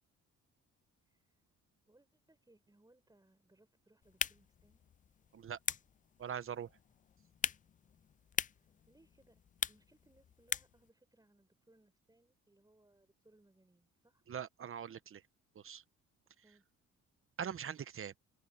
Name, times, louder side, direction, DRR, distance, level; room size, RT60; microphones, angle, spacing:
voice 1, 1.0-1.5 1.9-4.8 8.4-9.4 9.7-14.2 16.4-16.6, right 2 dB, 10° right, 6.2 m, -69 dB
sound 1, 4.0-10.9, left 8 dB, 25° left, 0.4 m, -42 dB
voice 2, 6.2-6.7 14.3-15.2 15.5-15.8 17.4-18.1, right 8 dB, 45° right, 1.1 m, -42 dB
open air
cardioid pair, 90°, 30 cm